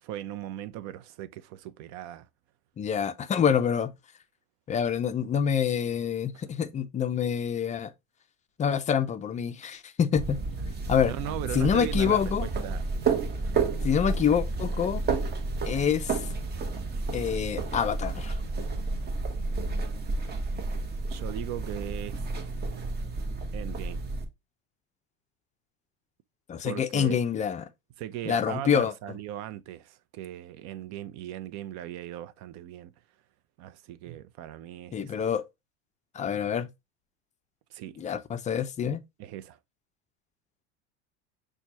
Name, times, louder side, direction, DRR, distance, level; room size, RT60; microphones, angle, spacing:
voice 1, 0.0-2.3 6.3-6.4 10.8-12.9 13.4-13.6 21.1-22.3 23.5-24.0 26.6-27.2 28.0-32.9 33.6-35.2 37.7-38.0 39.2-39.6, right 12 dB, 50° right, 0.5 m, -38 dB
voice 2, 2.8-3.9 4.7-7.9 8.6-10.4 10.9-11.1 11.5-12.5 13.8-15.0 15.6-16.2 17.1-18.3 26.5-27.6 28.3-28.9 34.9-35.4 36.1-36.7 38.0-39.0, left 8 dB, 20° left, 0.4 m, -26 dB
sound 1, 10.2-24.2, right 3 dB, 30° right, 1.0 m, -31 dB
5.8 x 2.3 x 2.7 m
supercardioid pair, 105°, 35 cm